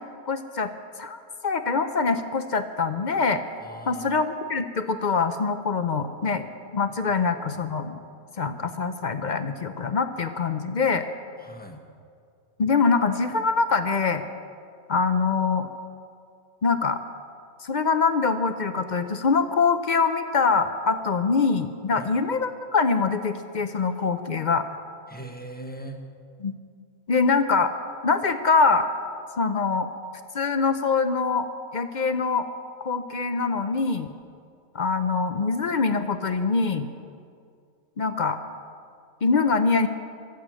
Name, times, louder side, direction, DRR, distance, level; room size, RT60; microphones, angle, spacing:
voice 1, 0.3-0.7 1.0-3.4 3.9-6.4 6.7-8.0 8.4-11.0 12.6-14.2 14.9-15.7 16.6-17.0 17.6-24.7 26.4-26.5 27.1-27.7 28.0-28.9 29.4-29.9 30.3-31.5 31.7-32.5 32.8-34.1 34.7-36.9 38.0-38.4 39.2-39.9, left 4 dB, 50° left, 9 dB, 0.6 m, -24 dB
voice 2, 3.6-4.2 7.0-7.7 11.4-11.8 21.9-22.1 25.1-26.0, right 1 dB, 5° left, 3 dB, 1.2 m, -41 dB
24.0 x 8.3 x 6.2 m, 2.3 s
omnidirectional pair, 1.5 m